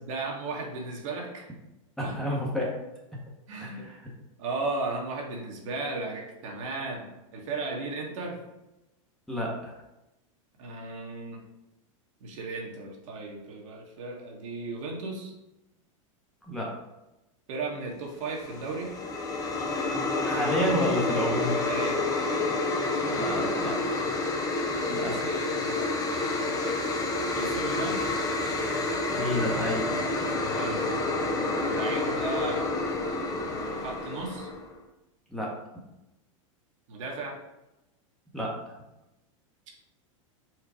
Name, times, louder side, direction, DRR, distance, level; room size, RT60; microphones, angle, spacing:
voice 1, 0.0-1.5 2.0-2.4 3.5-3.9 4.4-8.4 10.6-11.4 12.2-15.3 17.5-18.9 21.7-22.1 24.9-26.7 27.4-28.0 30.5-30.9 31.6-32.7 33.4-34.5 36.9-37.4, right 3 dB, 70° right, -1 dB, 1.3 m, -36 dB
voice 2, 2.0-2.7 3.6-4.0 9.3-9.7 16.5-16.7 20.2-21.5 23.0-24.0 24.9-25.2 29.1-29.9 35.3-35.5 38.3-38.5, left 1 dB, ahead, -4 dB, 1.0 m, -30 dB
sound 1, 18.3-34.7, left 2 dB, 20° left, 0.6 m, -29 dB
4.5 x 2.4 x 4.8 m, 0.94 s
supercardioid pair, 125°, 17 cm